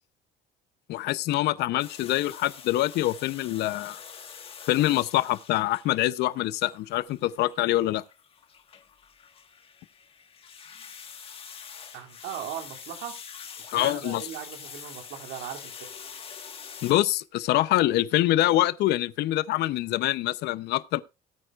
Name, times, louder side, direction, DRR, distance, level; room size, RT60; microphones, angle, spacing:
voice 1, 0.9-4.0 4.7-8.0 13.7-14.2 16.8-21.0, left 15 dB, 60° left, 0.7 m, -25 dB
sound 1, 1.8-16.9, left 7 dB, 30° left, 1.5 m, -45 dB
voice 2, 11.9-13.2 13.6-15.9, right 10 dB, 80° right, 2.8 m, -38 dB
19.0 x 9.1 x 2.4 m
cardioid pair, 150°, 19 cm